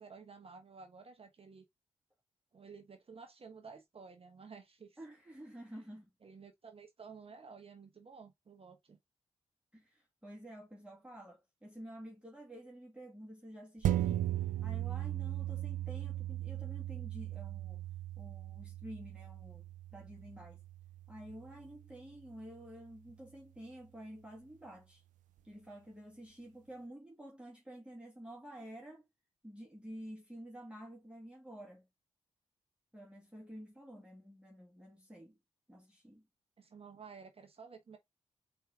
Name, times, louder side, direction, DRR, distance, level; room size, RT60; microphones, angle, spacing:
voice 1, 0.0-1.6 2.5-5.0 6.2-9.0 36.6-38.0, right 5 dB, 50° right, 1.1 m, -53 dB
voice 2, 5.0-6.1 9.7-14.3 14.6-17.8 18.2-20.6 21.1-25.0 25.4-29.0 29.4-31.9 32.9-35.4 35.7-36.2, right 1 dB, 10° right, 2.1 m, -50 dB
sound 1, 13.8-22.6 23.1-23.2, right 13 dB, 85° right, 0.5 m, -38 dB
4.6 x 3.2 x 3.5 m
supercardioid pair, 45°, 13 cm